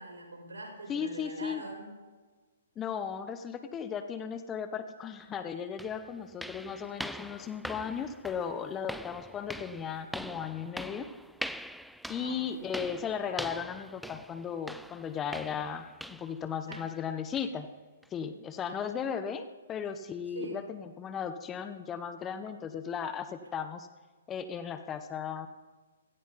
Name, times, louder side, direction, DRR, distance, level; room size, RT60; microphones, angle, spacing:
voice 1, 0.0-1.9 12.1-12.7 16.7-16.8 20.3-20.6, right 2 dB, 75° right, 0 dB, 6.0 m, -43 dB
voice 2, 0.9-1.6 2.8-11.1 12.1-17.7 18.1-23.9 24.3-25.5, left 7 dB, 20° left, 9 dB, 1.0 m, -36 dB
sound 1, 5.2-5.3 5.8-16.4 16.7-17.0 17.4-17.5 18.0-18.1 18.7-18.8, equal, ahead, 0.4 m, -43 dB
17.5 x 14.0 x 4.2 m, 1.4 s
hypercardioid pair, 130°, 0 cm